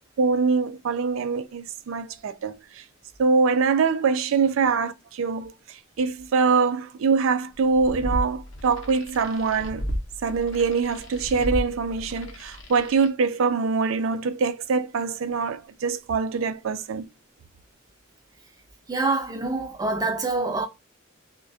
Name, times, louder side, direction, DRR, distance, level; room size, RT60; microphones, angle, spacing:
voice 1, 0.2-2.8 3.2-9.9 10.2-17.1, right 5 dB, 85° right, 0.4 m, -24 dB
sound 1, 7.6-13.1, equal, 80° left, 0.7 m, -34 dB
voice 2, 18.9-20.6, right 3 dB, 20° right, 0.5 m, -26 dB
2.3 x 2.2 x 2.5 m
head